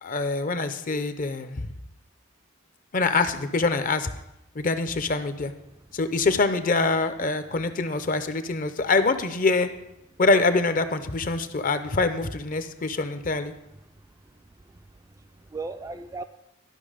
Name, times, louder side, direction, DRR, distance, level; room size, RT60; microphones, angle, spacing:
voice 1, 0.0-1.7 2.9-4.1 4.5-5.5 5.9-9.7 10.2-13.5, left 3 dB, 40° left, 10 dB, 0.6 m, -24 dB
voice 2, 13.8-16.2, right 3 dB, 15° right, 7 dB, 0.3 m, -39 dB
12.0 x 5.8 x 4.9 m, 0.87 s
head